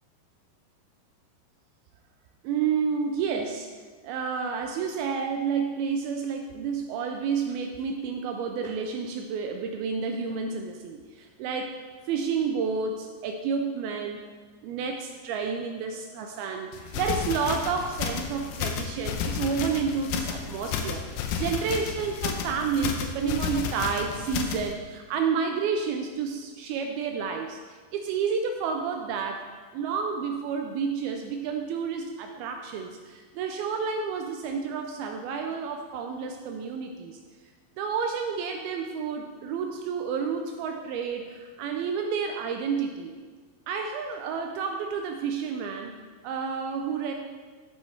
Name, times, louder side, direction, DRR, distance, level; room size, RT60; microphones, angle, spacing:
voice 1, 2.4-3.7 4.0-14.2 14.6-29.4 29.7-37.2 37.8-43.1 43.7-47.1, right 6 dB, 80° right, 4 dB, 2.3 m, -30 dB
sound 1, 16.7-24.7, left 7 dB, 80° left, 2.6 m, -32 dB
13.0 x 5.7 x 4.4 m, 1.5 s
omnidirectional pair, 4.7 m